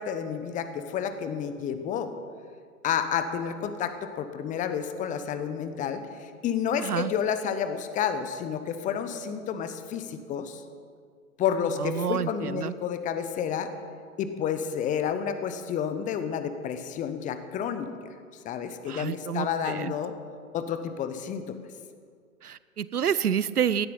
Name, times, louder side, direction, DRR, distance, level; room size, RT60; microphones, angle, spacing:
voice 1, 0.0-2.1 2.8-10.6 11.4-13.7 14.2-17.9 18.4-20.1 20.5-21.6, left 8 dB, 15° left, 10 dB, 0.8 m, -30 dB
voice 2, 6.8-7.1 11.8-12.7 18.9-19.9 22.4-23.9, right 8 dB, 80° right, 17 dB, 0.7 m, -28 dB
17.5 x 12.5 x 5.5 m, 2.1 s
figure-of-eight pair, 110°, 45 cm